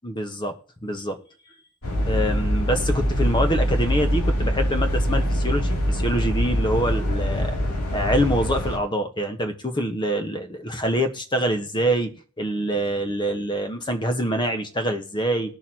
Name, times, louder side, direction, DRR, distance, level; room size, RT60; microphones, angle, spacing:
voice 1, 0.0-0.5 0.8-1.2 2.0-7.6 7.9-15.6, equal, 20° left, 7 dB, 1.2 m, -25 dB
sound 1, 1.8-8.8, equal, 85° left, 3.1 m, -23 dB
19.0 x 6.7 x 3.0 m, 0.41 s
head